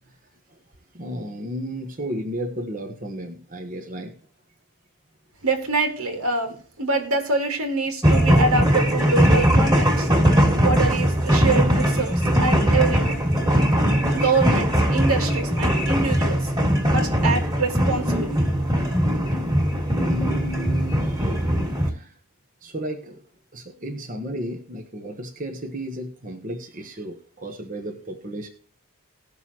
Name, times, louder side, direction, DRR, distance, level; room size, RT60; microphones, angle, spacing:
voice 1, 0.9-4.2 16.2-16.3 20.0-21.4 21.9-22.1 22.6-23.2 23.5-28.5, right 1 dB, 35° right, 3 dB, 1.2 m, -33 dB
voice 2, 5.4-10.1 10.6-13.2 14.1-16.5 16.9-18.4, right 3 dB, 85° right, 4 dB, 3.0 m, -25 dB
sound 1, 8.0-21.9, equal, 15° right, 2.4 m, -20 dB
19.5 x 6.7 x 3.0 m, 0.43 s
head